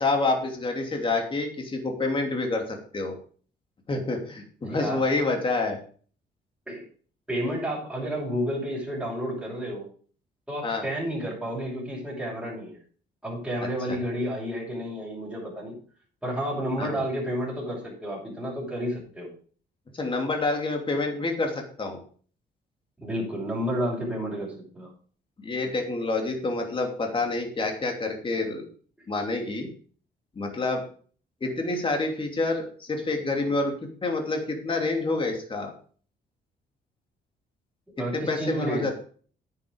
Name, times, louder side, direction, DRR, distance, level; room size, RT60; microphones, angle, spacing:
voice 1, 0.0-3.1 3.9-5.8 10.6-10.8 13.9-14.0 16.8-16.9 20.0-22.0 25.4-28.6 29.1-29.7 30.3-30.8 31.4-35.7 38.1-38.9, left 3 dB, 30° left, 3 dB, 2.9 m, -28 dB
voice 2, 4.6-5.0 6.7-6.8 7.3-9.9 10.5-12.8 13.2-15.7 16.2-19.3 23.0-24.9 38.0-38.9, equal, 5° right, -8 dB, 6.1 m, -31 dB
9.9 x 8.5 x 5.2 m, 0.43 s
cardioid pair, 125°, 18 cm